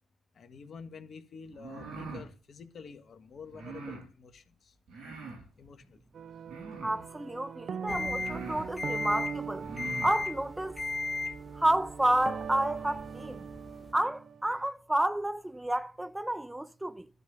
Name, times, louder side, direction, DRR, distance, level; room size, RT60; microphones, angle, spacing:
voice 1, 0.3-4.7 5.6-6.0, left 5 dB, 60° left, 1.6 m, -48 dB
sound 1, 1.5-2.3 3.5-4.0 4.9-5.4 6.4-7.0 7.7-7.8 8.1-8.7 9.5-10.1, right 4 dB, 80° right, 5.0 m, -42 dB
sound 2, 6.1-14.5, right 7 dB, 60° right, 0.7 m, -41 dB
voice 2, 6.8-9.7 10.0-10.8 11.5-13.5 13.9-17.1, right 1 dB, 15° right, 0.7 m, -30 dB
sound 3, 7.9-13.9, left 3 dB, 40° left, 1.1 m, -37 dB
12.0 x 5.4 x 7.8 m
hypercardioid pair, 40°, 0 cm